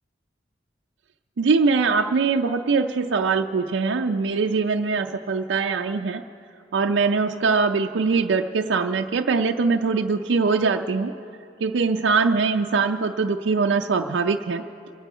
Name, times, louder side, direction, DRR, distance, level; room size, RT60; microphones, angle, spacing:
voice 1, 1.4-6.2 6.7-11.1 11.6-14.6, right 4 dB, 90° right, 5 dB, 0.5 m, -22 dB
27.0 x 9.1 x 4.9 m, 2.7 s
head